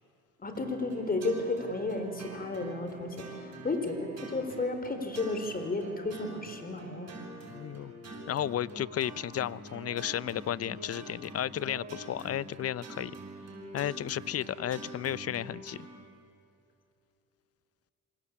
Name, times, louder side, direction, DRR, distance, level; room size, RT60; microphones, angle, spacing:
voice 1, 0.4-7.1, left 2 dB, 30° left, 8 dB, 4.2 m, -33 dB
sound 1, 0.5-16.0, right 1 dB, 60° right, 7.7 m, -45 dB
voice 2, 7.5-7.9 8.3-13.1 13.7-15.9, left 11 dB, 50° left, 20 dB, 0.7 m, -33 dB
27.0 x 25.5 x 8.6 m, 2.6 s
cardioid pair, 90°, 30 cm